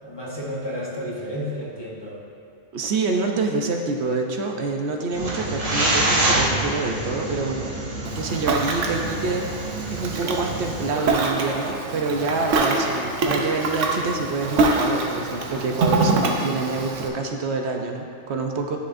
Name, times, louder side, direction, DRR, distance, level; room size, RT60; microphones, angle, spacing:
voice 1, 0.0-2.2, equal, 20° left, -5 dB, 1.1 m, -31 dB
voice 2, 2.7-18.8, right 3 dB, 70° right, 2 dB, 0.9 m, -27 dB
sound 1, 5.1-10.9, right 1 dB, 35° right, 0.9 m, -26 dB
Ocean, 8.0-17.1, right 3 dB, 85° right, 1.1 m, -25 dB
10.0 x 6.7 x 2.6 m, 2.4 s
omnidirectional pair, 1.2 m